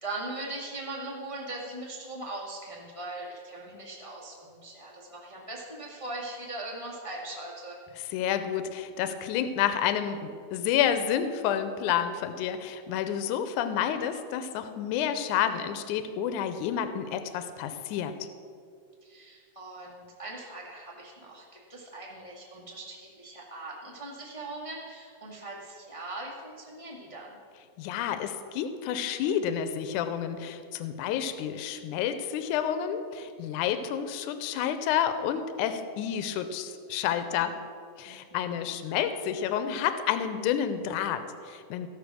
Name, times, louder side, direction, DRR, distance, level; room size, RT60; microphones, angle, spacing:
voice 1, 0.0-7.8 19.0-27.4 38.0-38.7, right 2 dB, 40° left, -4 dB, 0.4 m, -40 dB
voice 2, 8.1-18.2 27.8-37.6 38.0-41.9, left 9 dB, 80° left, 10 dB, 2.1 m, -29 dB
15.0 x 6.6 x 6.1 m, 2.3 s
omnidirectional pair, 3.6 m